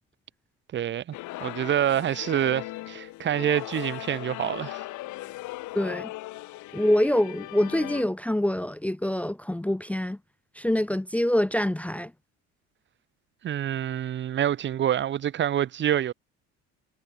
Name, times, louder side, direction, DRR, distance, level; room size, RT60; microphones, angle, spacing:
voice 1, 0.7-1.1 1.4-4.8 13.4-16.1, right 10 dB, 40° right, 1.0 m, -26 dB
sound 1, 1.1-8.0, left 18 dB, 70° left, 4.0 m, -38 dB
voice 2, 5.7-6.1 6.7-10.2 10.6-12.1, left 1 dB, 5° left, 0.7 m, -25 dB
cardioid pair, 115°, 31 cm